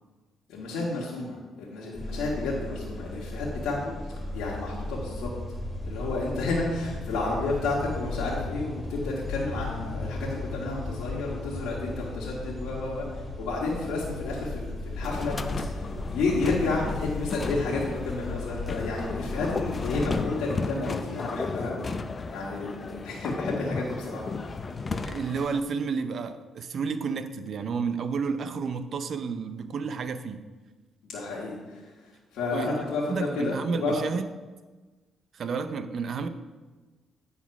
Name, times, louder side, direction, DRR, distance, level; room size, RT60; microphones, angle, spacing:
voice 1, 0.5-5.3 5.8-21.8 22.3-24.8 31.0-33.9, left 3 dB, 90° left, -6 dB, 1.6 m, -31 dB
sound 1, 1.9-20.3, left 2 dB, 15° left, 2.5 m, -36 dB
sound 2, 15.0-25.6, left 4 dB, 35° left, 0.5 m, -34 dB
voice 2, 25.1-30.5 32.5-32.8 33.1-34.3 35.3-36.3, right 5 dB, 55° right, 10 dB, 0.6 m, -31 dB
9.2 x 4.1 x 5.9 m, 1.3 s
cardioid pair, 90°, 0 cm